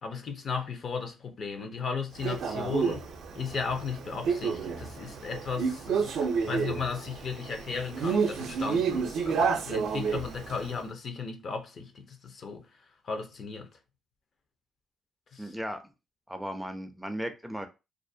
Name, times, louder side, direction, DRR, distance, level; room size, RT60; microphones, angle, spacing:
voice 1, 0.0-3.1 3.3-6.1 6.4-13.8 15.3-15.5, left 5 dB, 55° left, 0.5 m, -35 dB
Male speech man speaking, 2.2-10.8, right 5 dB, 75° right, 0.4 m, -30 dB
voice 2, 15.4-15.8 16.3-17.7, equal, 5° right, 0.4 m, -36 dB
2.4 x 2.1 x 2.6 m
cardioid pair, 90°, 0 cm